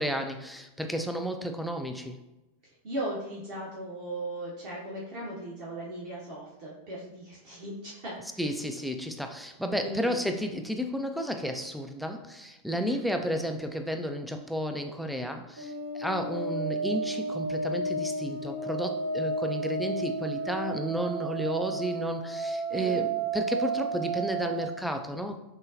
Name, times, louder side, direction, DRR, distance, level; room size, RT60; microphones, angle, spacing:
voice 1, 0.0-2.2 8.4-25.4, equal, ahead, 6 dB, 0.4 m, -32 dB
voice 2, 2.8-8.4 9.8-10.2 12.7-13.0 22.7-23.1, right 1 dB, 45° right, -6 dB, 1.0 m, -38 dB
sound 1, 15.6-24.6, right 3 dB, 70° right, 0.8 m, -32 dB
6.3 x 2.3 x 2.5 m, 0.98 s
figure-of-eight pair, 90°, 0 cm